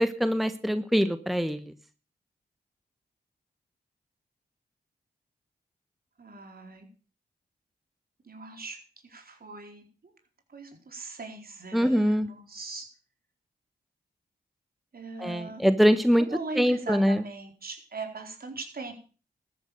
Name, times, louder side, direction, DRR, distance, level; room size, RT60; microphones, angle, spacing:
voice 1, 0.0-1.7 11.7-12.3 15.2-16.3 16.5-17.2, equal, ahead, 11 dB, 1.2 m, -23 dB
voice 2, 6.2-6.9 8.3-8.8 9.0-9.8 10.5-12.9 14.9-15.7 16.2-18.9, right 3 dB, 60° right, 5 dB, 4.2 m, -40 dB
13.5 x 9.6 x 6.7 m, 0.37 s
cardioid pair, 40°, 17 cm